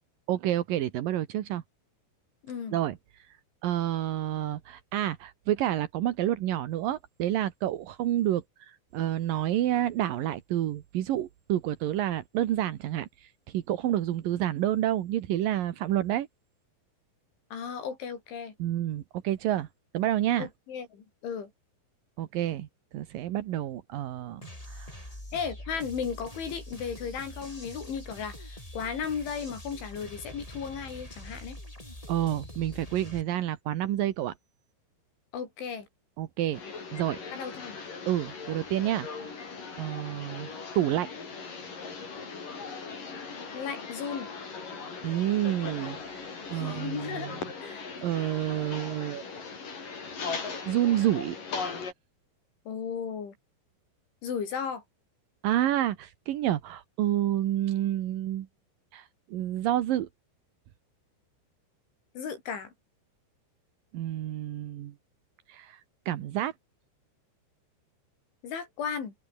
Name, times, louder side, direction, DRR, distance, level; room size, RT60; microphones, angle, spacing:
voice 1, 0.3-1.6 2.7-3.0 3.6-16.3 18.6-19.7 19.9-20.5 22.2-22.7 22.9-25.0 32.1-34.3 36.2-36.6 36.9-37.2 38.1-39.3 39.8-40.5 40.8-41.1 45.0-47.4 48.0-49.2 50.7-51.4 55.4-58.5 58.9-60.1 63.9-64.9 65.5-65.8 66.1-66.5, right 12 dB, 65° right, 2.3 m, -29 dB
voice 2, 2.4-2.8 17.5-18.5 20.4-21.5 25.3-31.6 35.3-35.9 37.3-37.8 43.5-44.3 46.5-47.3 47.6-47.9 52.7-53.3 54.2-54.8 62.1-62.7 68.4-69.1, left 6 dB, 70° left, 6.8 m, -35 dB
sound 1, 24.4-33.2, left 1 dB, 5° left, 5.7 m, -44 dB
sound 2, 36.5-51.9, left 5 dB, 45° left, 6.9 m, -39 dB
open air
omnidirectional pair, 5.7 m